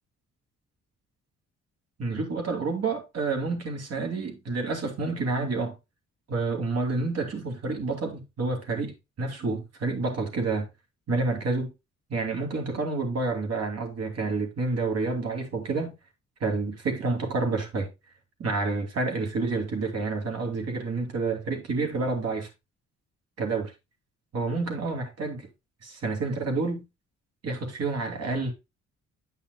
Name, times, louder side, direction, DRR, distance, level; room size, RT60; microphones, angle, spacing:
voice 1, 2.0-5.7 6.3-10.7 11.1-11.7 12.1-15.9 16.4-17.9 18.4-22.5 23.4-23.7 24.3-25.5 25.8-26.8 27.4-28.5, right 3 dB, 55° right, 2.7 m, -29 dB
9.5 x 5.6 x 2.3 m
cardioid pair, 90°, 30 cm